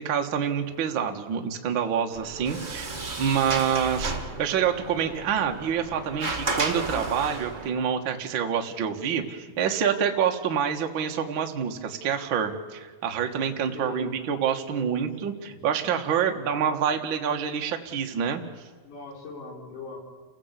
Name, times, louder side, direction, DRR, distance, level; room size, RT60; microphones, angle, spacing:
voice 1, 0.0-18.4, right 8 dB, 45° right, 3 dB, 1.8 m, -27 dB
Sliding door, 2.1-7.7, right 3 dB, 20° right, 2.0 m, -33 dB
voice 2, 2.8-3.2 13.7-14.2 14.7-15.5 16.3-16.6 18.8-20.0, left 4 dB, 65° left, 0 dB, 5.5 m, -41 dB
29.5 x 16.0 x 8.2 m, 1.5 s
omnidirectional pair, 4.0 m